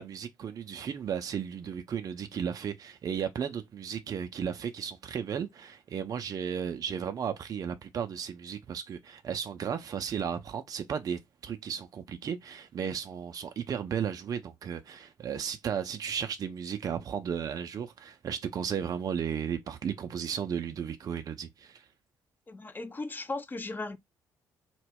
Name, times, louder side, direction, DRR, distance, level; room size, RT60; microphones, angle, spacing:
voice 1, 0.0-21.8, right 7 dB, 35° right, 0.4 m, -34 dB
voice 2, 22.5-24.0, left 3 dB, 20° left, 0.4 m, -37 dB
2.1 x 2.1 x 3.3 m
figure-of-eight pair, 45°, 10 cm